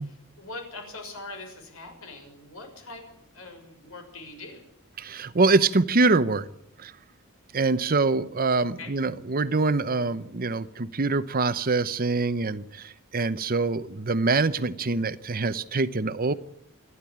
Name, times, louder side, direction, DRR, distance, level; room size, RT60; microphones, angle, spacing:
voice 1, 0.0-3.0 3.3-4.6 8.8-8.9, left 2 dB, 75° left, 5 dB, 6.3 m, -42 dB
voice 2, 5.0-6.5 6.8-6.9 7.5-16.3, right 3 dB, 45° right, 14 dB, 0.8 m, -24 dB
28.0 x 11.0 x 8.7 m, 0.77 s
head